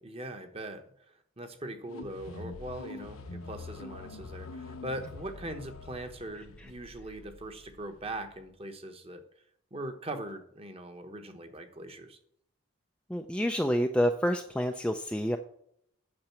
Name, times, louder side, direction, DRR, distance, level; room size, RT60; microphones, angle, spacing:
voice 1, 0.0-9.2 9.7-12.2, right 1 dB, 25° right, 7 dB, 1.1 m, -41 dB
sound 1, 1.8-8.5, left 2 dB, 80° left, 1.0 m, -45 dB
voice 2, 13.1-15.4, equal, 5° left, 5 dB, 0.4 m, -28 dB
8.8 x 6.7 x 6.0 m, 0.70 s
head